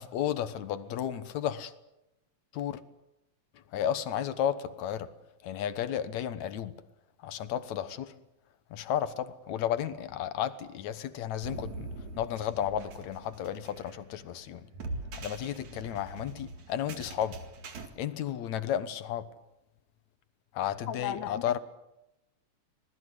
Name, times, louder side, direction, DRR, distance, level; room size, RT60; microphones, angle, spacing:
voice 1, 0.0-1.7 2.5-2.8 3.7-5.1 5.4-6.8 7.2-8.2 8.7-11.9 12.2-14.7 15.1-17.5 18.0-19.3 20.5-21.6, left 10 dB, 75° left, 2.4 m, -33 dB
sound 1, 11.4-17.9, right 2 dB, 70° right, 3.4 m, -42 dB
voice 2, 20.9-21.6, left 10 dB, 50° left, 1.8 m, -35 dB
25.5 x 19.5 x 8.0 m
omnidirectional pair, 3.4 m